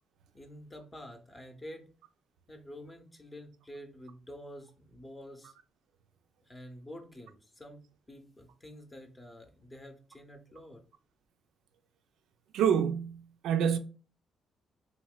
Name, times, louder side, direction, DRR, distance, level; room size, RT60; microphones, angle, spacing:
voice 1, 0.3-1.9 2.5-5.5 6.4-10.8, equal, 20° left, 0.6 m, -48 dB
voice 2, 12.5-13.8, right 8 dB, 80° right, 0.3 m, -27 dB
3.0 x 2.8 x 2.3 m
cardioid pair, 90°, 0 cm